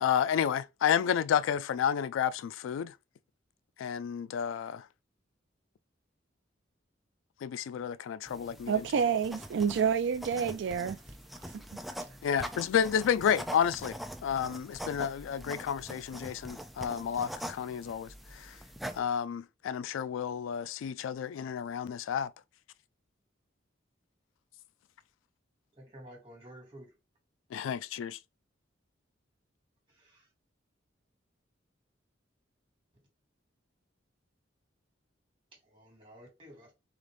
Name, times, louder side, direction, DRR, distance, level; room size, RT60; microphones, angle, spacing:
voice 1, 0.0-2.9 3.8-4.9 7.4-8.9 12.2-18.6 18.9-22.3 27.5-28.2, left 8 dB, 85° left, 0.3 m, -31 dB
sound 1, 8.3-19.0, equal, ahead, 0.4 m, -43 dB
voice 2, 8.7-11.0 11.5-11.6, right 7 dB, 65° right, 0.4 m, -28 dB
voice 3, 25.7-26.9 29.9-30.3 35.6-36.7, equal, 30° right, 2.4 m, -52 dB
3.9 x 3.5 x 3.3 m
head